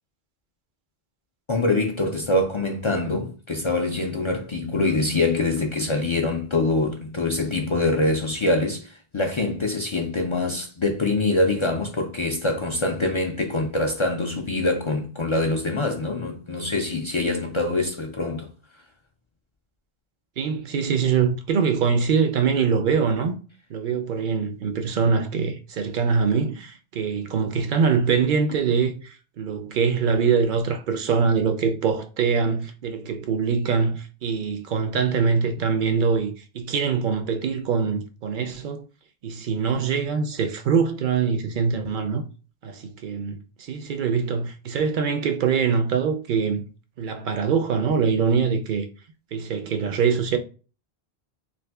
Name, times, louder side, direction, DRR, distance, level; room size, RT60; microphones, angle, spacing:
voice 1, 1.5-18.5, left 2 dB, 55° left, 0.3 m, -24 dB
voice 2, 20.4-23.3 23.7-38.8 39.2-42.3 42.6-46.6 47.0-48.9 49.3-50.4, right 6 dB, 60° right, 0.6 m, -23 dB
2.6 x 2.5 x 3.4 m
omnidirectional pair, 1.0 m